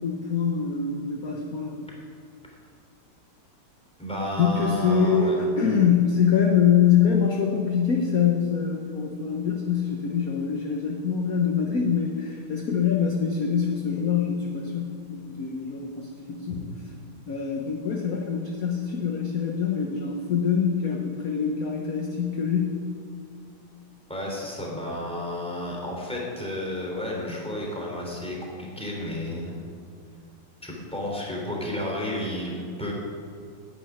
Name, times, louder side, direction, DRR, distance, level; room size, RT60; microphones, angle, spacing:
voice 1, 0.0-1.8 4.4-16.7 17.3-22.8, left 7 dB, 50° left, 1 dB, 1.4 m, -24 dB
voice 2, 4.0-5.4 16.5-16.6 24.1-29.5 30.6-32.9, left 1 dB, 5° left, -2 dB, 3.3 m, -32 dB
11.0 x 8.7 x 9.6 m, 2.3 s
omnidirectional pair, 2.3 m